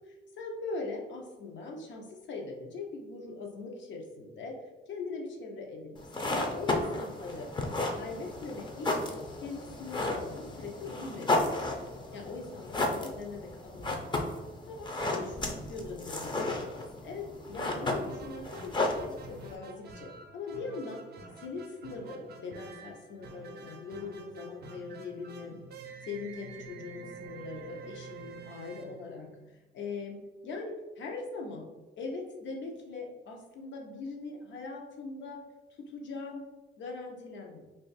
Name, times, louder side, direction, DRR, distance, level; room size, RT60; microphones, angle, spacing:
voice 1, 0.4-4.6 4.9-7.5 7.9-9.1 9.4-11.5 12.1-14.0 14.7-21.0 21.4-25.6 26.0-31.7 32.0-35.4 35.9-36.4 36.8-37.6, left 3 dB, 70° left, 2 dB, 0.7 m, -41 dB
sound 1, 6.0-19.6, left 2 dB, 25° left, 0.5 m, -34 dB
sound 2, 14.9-19.4 19.9-20.0, equal, 85° left, 1.2 m, -50 dB
sound 3, 17.8-29.7, right 5 dB, 55° right, 0.5 m, -49 dB
2.5 x 2.5 x 3.9 m, 1.1 s
cardioid pair, 90°, 20 cm